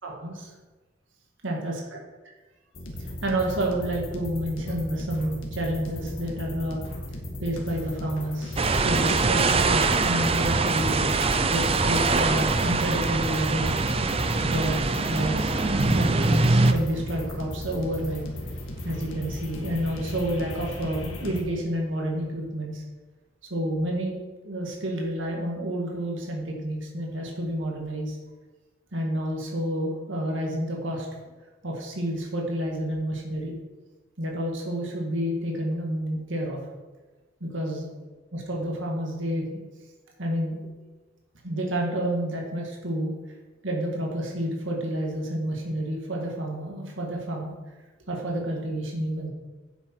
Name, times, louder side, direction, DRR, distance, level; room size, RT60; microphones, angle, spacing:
voice 1, 0.0-0.5 1.4-2.0 3.0-6.8 7.4-8.6 8.8-11.1 11.5-13.7 14.4-15.6 16.0-18.2 18.8-22.8 23.5-24.2 24.4-28.2 28.9-31.1 31.6-33.5 34.2-36.6 37.4-37.9 38.3-39.6 40.2-40.6 41.4-43.1 43.6-47.5 48.1-49.3, right 1 dB, 75° right, -1 dB, 2.0 m, -29 dB
sound 1, 2.7-21.4, left 1 dB, 90° left, 1.9 m, -36 dB
sound 2, 8.6-16.7, right 3 dB, 30° right, 0.5 m, -23 dB
9.5 x 8.0 x 4.6 m, 1.2 s
head